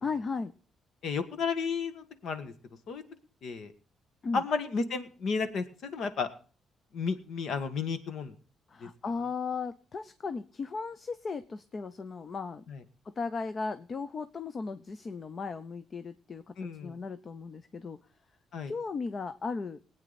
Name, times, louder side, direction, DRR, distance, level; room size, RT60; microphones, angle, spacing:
voice 1, 0.0-0.5 4.2-4.4 8.7-12.6 13.0-18.0 18.7-19.8, left 4 dB, 40° left, 12 dB, 0.7 m, -36 dB
voice 2, 1.0-2.5 2.9-3.0 3.4-3.7 4.3-6.3 6.9-8.3 8.8-8.9 12.7-12.8 16.6-17.0 18.5-18.7, left 5 dB, 70° left, 10 dB, 1.7 m, -32 dB
20.0 x 9.0 x 4.1 m, 0.39 s
cardioid pair, 90°, 0 cm